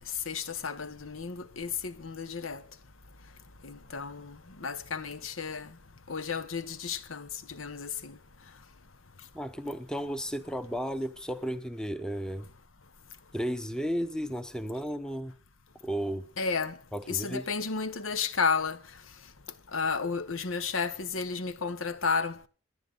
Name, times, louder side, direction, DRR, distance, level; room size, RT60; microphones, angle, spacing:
voice 1, 0.3-2.6 3.6-4.3 4.6-5.7 6.1-8.1 16.4-16.7 17.1-18.8 19.7-22.5, left 5 dB, 85° left, 1.1 m, -32 dB
voice 2, 9.3-12.5 13.3-15.3 15.8-16.3 16.9-17.5, equal, 5° left, 0.8 m, -34 dB
28.0 x 10.5 x 4.0 m
head